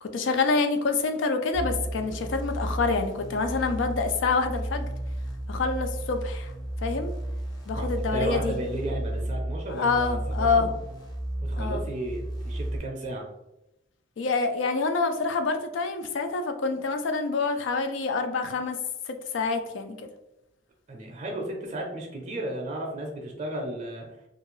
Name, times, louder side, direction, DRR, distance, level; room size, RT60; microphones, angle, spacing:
voice 1, 0.0-4.9 5.5-6.5 6.8-7.1 7.7-8.6 9.7-10.7 11.6-11.8 14.2-18.8 19.1-20.1, left 4 dB, 70° left, 7 dB, 0.4 m, -27 dB
sound 1, 1.5-12.8, right 1 dB, 20° left, 0.6 m, -33 dB
voice 2, 7.8-10.8 11.4-13.2 20.9-24.1, right 1 dB, 40° right, 0 dB, 0.5 m, -34 dB
2.7 x 2.4 x 3.0 m, 0.90 s
head